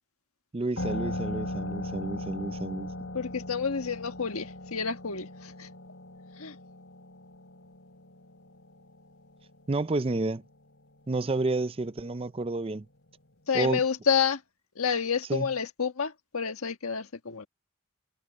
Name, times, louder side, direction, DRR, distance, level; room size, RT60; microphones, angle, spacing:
voice 1, 0.5-3.1 9.7-10.4 11.1-12.9 13.5-13.8 15.3-15.5, right 2 dB, 25° right, 0.5 m, -30 dB
sound 1, 0.8-10.0, left 1 dB, 65° left, 5.2 m, -38 dB
voice 2, 3.1-5.7 6.4-6.5 13.5-14.4 14.7-17.5, left 6 dB, 90° left, 1.5 m, -29 dB
head